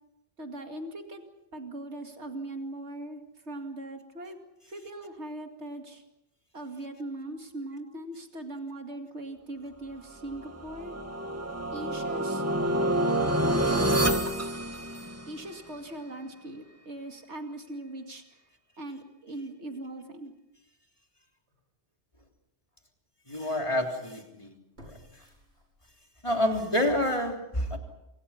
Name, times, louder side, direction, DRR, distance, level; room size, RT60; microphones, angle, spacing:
voice 1, 0.4-1.2 1.5-4.4 4.7-6.0 6.5-10.9 11.7-12.4 13.4-14.0 15.3-18.4 18.8-20.3, right 1 dB, 90° right, 4 dB, 2.6 m, -40 dB
sound 1, 10.3-15.5, right 1 dB, 15° right, 1.5 m, -28 dB
sound 2, 21.5-21.6 22.2-22.3 24.7-26.2 26.6-26.7, equal, 70° right, 5.9 m, -54 dB
voice 2, 23.3-24.5 24.8-25.0 26.2-27.8, left 1 dB, 25° left, 2 dB, 3.5 m, -28 dB
28.5 x 25.0 x 5.9 m, 0.87 s
omnidirectional pair, 1.1 m